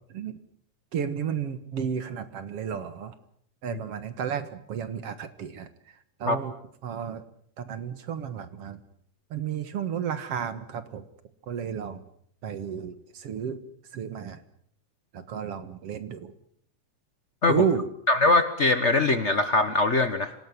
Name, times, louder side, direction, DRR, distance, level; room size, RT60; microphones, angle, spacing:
voice 1, 0.9-3.2 3.6-5.7 6.2-6.5 6.8-7.2 7.6-8.8 9.3-11.0 11.5-12.0 12.4-13.6 13.9-14.4 15.1-16.3 17.5-17.9, right 7 dB, 55° right, 11 dB, 2.2 m, -32 dB
voice 2, 18.1-20.3, left 2 dB, 85° left, 10 dB, 0.6 m, -22 dB
26.5 x 18.5 x 9.5 m, 0.67 s
omnidirectional pair, 3.6 m